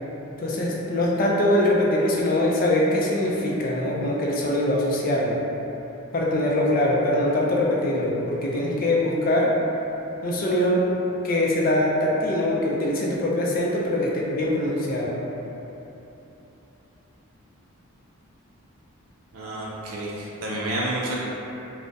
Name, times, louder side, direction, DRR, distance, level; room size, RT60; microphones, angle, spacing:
voice 1, 0.4-5.4 6.1-9.5 10.2-10.9 11.2-15.2, left 1 dB, 40° left, -3 dB, 0.4 m, -23 dB
voice 2, 19.3-21.1, right 1 dB, 80° right, -5 dB, 0.4 m, -30 dB
3.3 x 2.0 x 2.6 m, 3.0 s
head